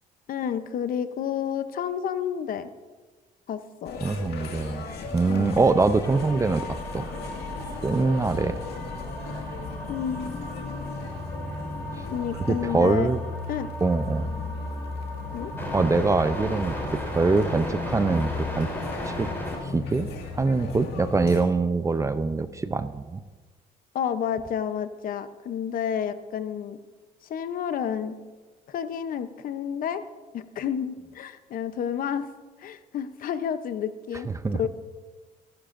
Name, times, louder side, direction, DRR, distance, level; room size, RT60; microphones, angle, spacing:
voice 1, 0.3-2.7 3.5-4.0 5.3-5.5 9.9-10.8 12.1-13.1 13.5-13.7 15.3-15.5 23.9-26.8 27.3-28.2 28.7-30.0 30.3-32.3 32.6-34.3 34.5-34.7, left 8 dB, 55° left, 12 dB, 0.8 m, -30 dB
sound 1, 3.9-21.4, left 3 dB, 75° left, 2.1 m, -36 dB
voice 2, 4.0-4.8 5.1-7.1 7.8-8.6 12.5-13.2 13.8-14.3 15.7-18.7 19.1-19.3 19.7-20.1 20.4-23.2 34.3-34.6, right 3 dB, 20° right, 12 dB, 0.5 m, -24 dB
sound 2, 6.0-19.7, equal, 15° left, 3.4 m, -37 dB
24.0 x 11.5 x 2.6 m, 1.3 s
cardioid pair, 110°, 17 cm